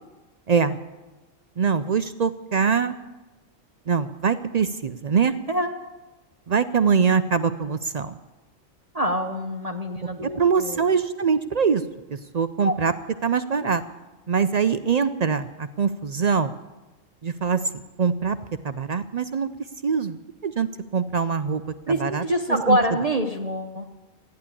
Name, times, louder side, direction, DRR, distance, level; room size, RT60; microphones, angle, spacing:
voice 1, 0.5-0.8 1.6-2.9 3.9-5.3 6.5-8.1 10.4-11.8 12.1-12.9 13.2-13.8 14.3-16.5 17.2-17.6 18.0-18.4 18.6-19.5 19.8-20.2 20.4-21.6 21.9-22.8, right 6 dB, 60° right, 11 dB, 0.4 m, -23 dB
voice 2, 8.9-10.9 12.6-12.7 21.9-23.9, equal, 35° right, 3 dB, 0.9 m, -25 dB
14.5 x 10.5 x 8.4 m, 1.1 s
omnidirectional pair, 1.4 m